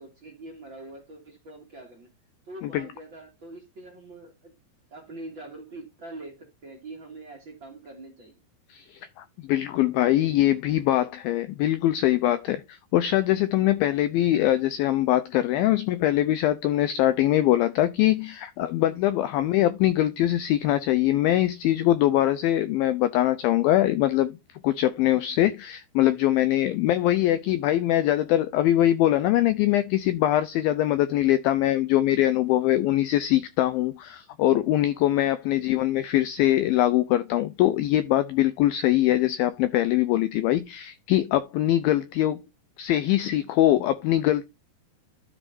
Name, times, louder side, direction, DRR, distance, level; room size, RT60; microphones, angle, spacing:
voice 1, 0.0-2.1 2.5-4.5 4.9-8.4, right 2 dB, 40° right, 1.9 m, -43 dB
voice 2, 8.7-24.4 24.6-42.4 42.8-44.5, left 13 dB, 85° left, 2.1 m, -23 dB
12.5 x 6.1 x 2.6 m
omnidirectional pair, 4.9 m